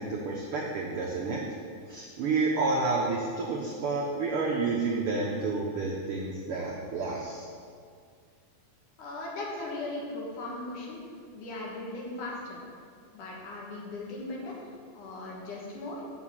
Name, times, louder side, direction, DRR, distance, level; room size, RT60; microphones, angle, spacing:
voice 1, 0.0-1.4 1.9-7.5, right 3 dB, 80° right, -1 dB, 1.2 m, -30 dB
voice 2, 9.0-11.0 11.3-12.6 13.1-14.6 14.9-16.0, left 2 dB, 80° left, -3 dB, 3.0 m, -38 dB
6.5 x 6.4 x 7.2 m, 2.1 s
omnidirectional pair, 3.6 m